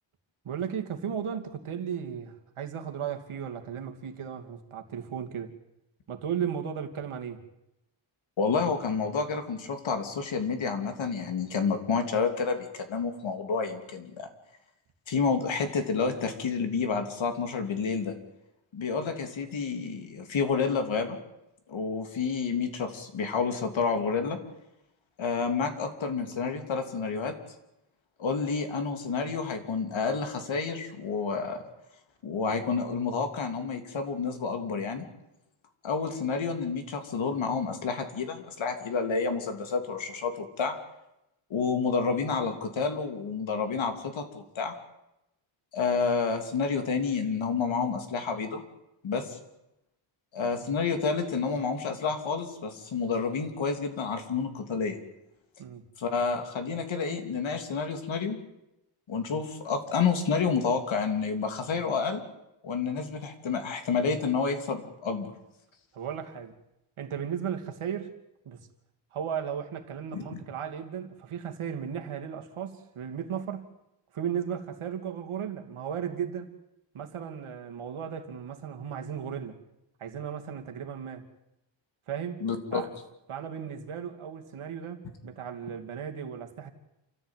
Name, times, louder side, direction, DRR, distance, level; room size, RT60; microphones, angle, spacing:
voice 1, 0.4-5.5 6.1-7.4 50.4-50.6 55.6-55.8 65.9-66.5 67.0-68.1 68.4-68.6 69.1-73.7 74.1-76.5 76.9-79.6 80.0-81.3 82.1-82.4 82.7-82.9 83.3-86.7, right 8 dB, 90° right, 2.7 m, -35 dB
voice 2, 8.4-14.3 15.1-18.1 18.7-21.2 21.7-24.4 25.2-27.3 28.2-31.6 32.2-35.0 35.8-40.7 41.5-44.7 45.7-48.6 49.0-49.4 50.3-55.0 56.0-58.4 59.1-62.2 62.6-65.3 70.1-70.4 82.4-82.8, left 5 dB, 70° left, 3.1 m, -29 dB
28.0 x 14.5 x 9.1 m
wide cardioid pair, 175°, 48 cm